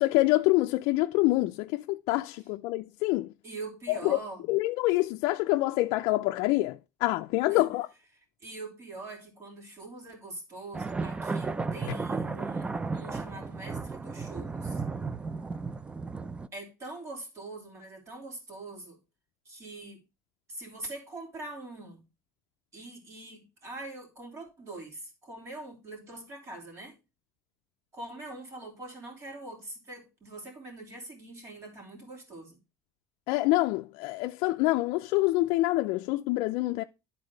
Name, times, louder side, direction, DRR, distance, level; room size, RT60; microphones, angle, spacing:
voice 1, 0.0-3.3 3.9-4.2 4.5-7.9 11.9-12.0 33.3-36.8, left 19 dB, 70° left, 0.4 m, -26 dB
voice 2, 3.4-4.4 7.5-7.7 8.4-14.8 16.5-19.0 19.4-20.0 20.5-22.0 22.7-27.0 27.9-32.6, right 2 dB, 35° right, 3.0 m, -43 dB
sound 1, 10.7-16.5, right 4 dB, 15° right, 0.4 m, -34 dB
10.5 x 4.0 x 4.9 m
cardioid pair, 140°, 8 cm